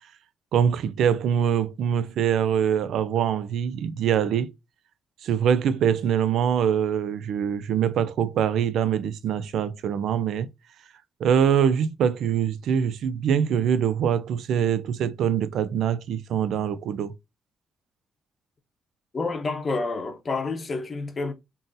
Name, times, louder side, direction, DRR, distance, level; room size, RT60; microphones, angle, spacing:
voice 1, 0.5-4.5 5.2-10.5 11.2-17.1, right 8 dB, 75° right, 0.4 m, -24 dB
voice 2, 19.1-21.3, left 3 dB, 35° left, 0.7 m, -29 dB
3.7 x 2.7 x 2.6 m
cardioid pair, 90°, 0 cm